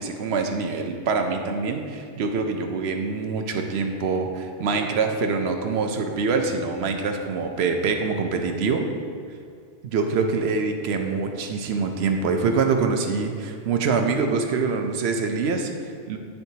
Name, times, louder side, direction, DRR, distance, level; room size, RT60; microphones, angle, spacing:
voice 1, 0.0-8.9 9.8-16.2, right 4 dB, 65° right, 5 dB, 0.8 m, -25 dB
9.5 x 4.4 x 2.8 m, 2.2 s
omnidirectional pair, 1.2 m